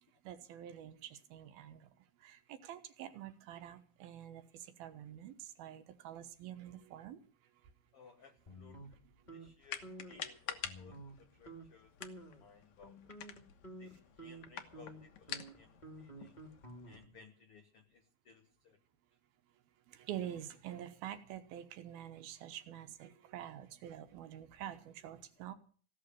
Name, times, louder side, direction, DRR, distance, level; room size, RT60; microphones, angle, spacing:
voice 1, 0.2-1.9 2.2-7.2 19.9-25.6, right 11 dB, 80° right, 9 dB, 3.0 m, -47 dB
voice 2, 7.9-9.0 9.3-13.0 13.8-16.4 16.8-18.8, left 5 dB, 85° left, 7 dB, 1.2 m, -60 dB
sound 1, 8.5-9.5 9.8-10.2 10.6-11.2 11.5-11.7 12.0-12.4 12.8-17.2, right 1 dB, 15° left, 1.6 m, -51 dB
sound 2, 9.6-17.0, left 9 dB, 65° left, 2.2 m, -48 dB
17.0 x 6.8 x 10.0 m, 0.43 s
omnidirectional pair, 4.3 m